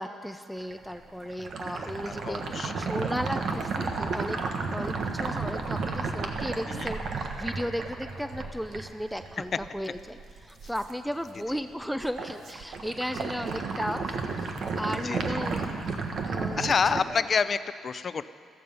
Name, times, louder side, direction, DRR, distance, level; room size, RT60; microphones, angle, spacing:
voice 1, 0.0-4.4 4.7-14.1 14.4-15.7 16.2-17.2, equal, ahead, 8 dB, 0.6 m, -35 dB
sound 1, 0.6-10.9 11.3-11.7 12.0-17.0, right 4 dB, 60° right, 1.4 m, -33 dB
voice 2, 1.7-2.9 6.7-6.9 15.0-15.4 16.2-18.3, left 6 dB, 45° left, 14 dB, 0.5 m, -29 dB
15.0 x 14.0 x 5.5 m, 2.1 s
cardioid pair, 90°, 0 cm